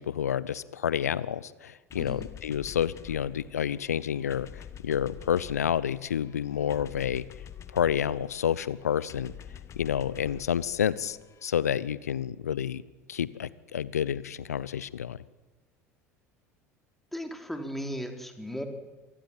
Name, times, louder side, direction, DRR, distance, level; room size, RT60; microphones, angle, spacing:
voice 1, 0.0-7.2 7.7-9.3 9.8-12.8 13.1-15.2, left 9 dB, 75° left, 19 dB, 0.8 m, -29 dB
sound 1, 1.9-11.5, left 9 dB, 35° left, 1.3 m, -47 dB
voice 2, 2.0-2.3 17.1-18.6, equal, 5° left, 4 dB, 4.0 m, -36 dB
27.0 x 19.0 x 7.5 m, 1.3 s
figure-of-eight pair, 70°, 8 cm